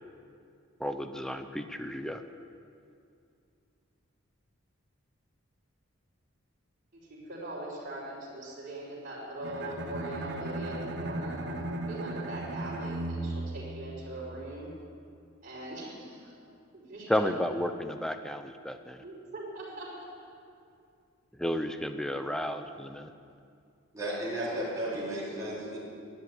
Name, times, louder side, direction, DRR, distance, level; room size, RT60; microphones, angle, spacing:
voice 1, 0.8-2.2 17.1-19.0 21.4-23.1, equal, 5° left, 8 dB, 0.7 m, -32 dB
voice 2, 6.9-10.8 11.0-11.4 11.9-14.7 15.4-16.3 16.7-17.1 19.0-20.3, right 1 dB, 45° right, -6 dB, 5.2 m, -41 dB
Bowed string instrument, 9.4-14.5, right 2 dB, 60° right, 1.4 m, -36 dB
voice 3, 23.9-25.8, right 1 dB, 15° right, -10 dB, 3.8 m, -34 dB
13.0 x 10.5 x 9.5 m, 2.4 s
head